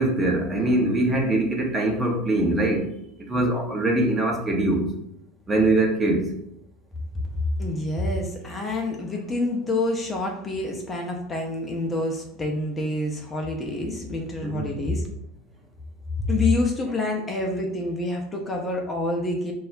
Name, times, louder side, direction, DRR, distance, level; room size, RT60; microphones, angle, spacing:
voice 1, 0.0-2.9 3.3-4.9 5.5-6.3 14.4-14.7, right 2 dB, 15° right, 0 dB, 0.6 m, -22 dB
voice 2, 7.3-15.1 16.2-19.5, left 2 dB, 20° left, 0 dB, 0.5 m, -27 dB
2.2 x 2.0 x 3.7 m, 0.78 s
figure-of-eight pair, 75°, 0 cm